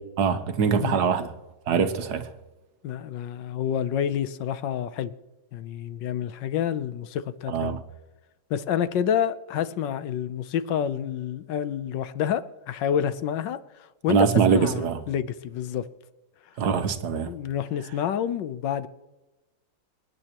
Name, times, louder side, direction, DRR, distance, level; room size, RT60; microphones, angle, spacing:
voice 1, 0.2-1.3 1.7-2.3 7.5-7.8 14.1-15.0 16.6-17.3, right 6 dB, 65° right, 1.4 m, -23 dB
voice 2, 2.8-5.1 5.5-7.8 8.5-15.9 17.3-18.9, left 9 dB, 80° left, 1.4 m, -28 dB
26.5 x 9.6 x 3.0 m
omnidirectional pair, 2.0 m